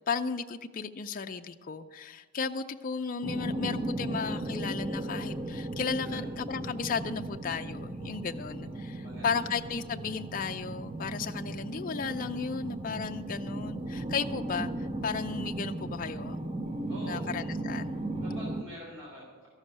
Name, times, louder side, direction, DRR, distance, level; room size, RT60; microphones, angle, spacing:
voice 1, 0.1-16.4 17.0-18.0, left 5 dB, 40° left, 6 dB, 0.4 m, -34 dB
sound 1, 3.2-18.6, right 1 dB, 20° right, 0.6 m, -36 dB
voice 2, 8.2-9.5 16.9-17.3 18.2-19.5, equal, 55° right, -5 dB, 3.3 m, -47 dB
13.5 x 6.4 x 9.7 m, 1.4 s
head